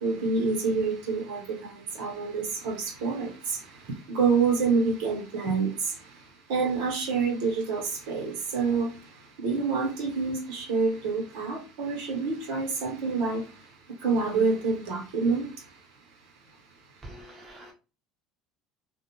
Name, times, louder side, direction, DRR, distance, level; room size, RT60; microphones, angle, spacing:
voice 1, 0.0-3.6 4.1-5.9 6.5-8.9 9.4-13.4 14.0-15.5, right 4 dB, 85° right, 1.0 m, -27 dB
voice 2, 17.0-17.7, right 1 dB, 20° right, 1.0 m, -45 dB
2.3 x 2.1 x 2.9 m
supercardioid pair, 115°, 0 cm